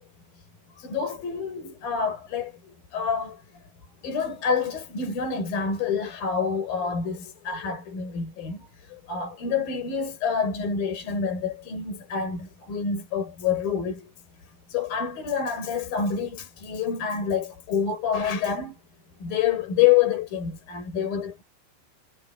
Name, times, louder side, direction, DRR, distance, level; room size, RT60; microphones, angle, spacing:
voice 1, 0.8-2.5 2.9-3.4 4.0-14.1 14.7-18.8 19.2-21.4, left 7 dB, 55° left, 6.9 m, -27 dB
omnidirectional pair, 4.9 m